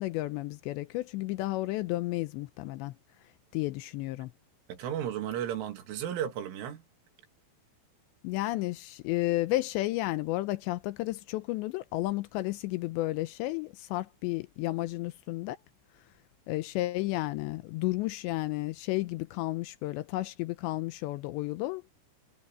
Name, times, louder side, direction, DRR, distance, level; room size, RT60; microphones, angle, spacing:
voice 1, 0.0-2.9 3.5-4.3 8.2-15.6 16.5-21.9, left 18 dB, 80° left, 2.7 m, -32 dB
voice 2, 4.7-6.8, right 10 dB, 85° right, 4.7 m, -34 dB
omnidirectional pair, 5.5 m